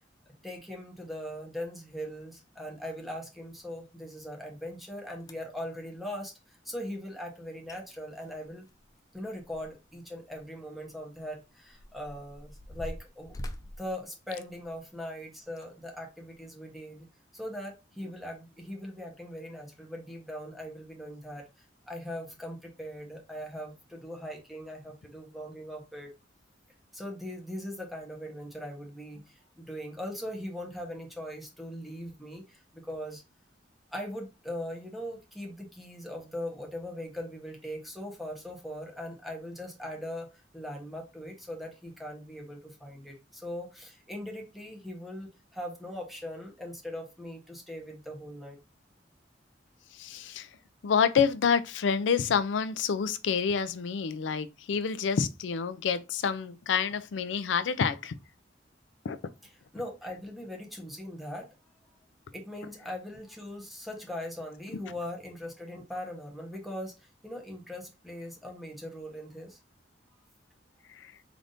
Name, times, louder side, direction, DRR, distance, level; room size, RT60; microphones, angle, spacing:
voice 1, 0.4-8.6 9.1-13.3 13.8-17.1 17.3-21.4 21.9-26.1 26.9-33.2 33.9-48.6 59.7-61.5 62.3-69.6, equal, ahead, 1.0 m, -40 dB
sound 1, 5.2-5.6 7.4-7.5 7.7-7.8 8.1-9.9 10.3-10.4 11.1-14.9 15.5-15.7 16.3-16.4, left 1 dB, 20° left, 0.4 m, -44 dB
voice 2, 50.0-50.5 50.8-58.2 59.0-59.2, left 6 dB, 80° left, 0.4 m, -28 dB
3.9 x 3.4 x 2.5 m
head